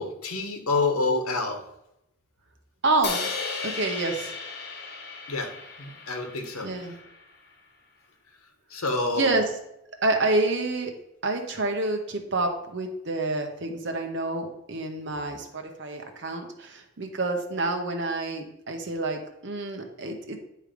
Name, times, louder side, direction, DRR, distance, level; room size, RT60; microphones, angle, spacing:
voice 1, 0.0-1.6 5.3-5.5 5.8-6.7 8.7-9.3, left 3 dB, 90° left, 4 dB, 1.1 m, -27 dB
voice 2, 2.8-4.3 6.6-7.0 9.1-9.6 10.0-10.9 11.2-20.4, right 2 dB, 55° right, 4 dB, 0.9 m, -28 dB
Crash cymbal, 3.0-7.2, left 4 dB, 50° left, 1.1 m, -35 dB
9.0 x 3.3 x 5.1 m, 0.82 s
head